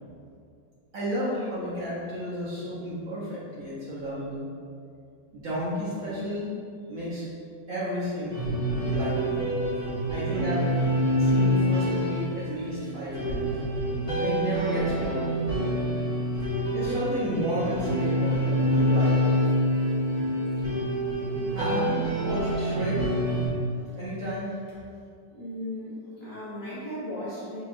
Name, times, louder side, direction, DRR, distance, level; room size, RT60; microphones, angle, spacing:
voice 1, 0.9-4.5 5.3-6.5 6.9-7.3 7.7-8.4 8.9-9.4 10.1-10.7 11.2-13.6 14.2-15.3 16.5-19.8 21.5-23.0 23.9-24.5, equal, 55° right, -10 dB, 1.0 m, -32 dB
sound 1, 8.3-23.5, equal, 25° right, 0.9 m, -26 dB
voice 2, 25.3-27.6, left 1 dB, 70° left, -11 dB, 0.3 m, -36 dB
4.5 x 2.9 x 2.5 m, 2.4 s
omnidirectional pair, 2.0 m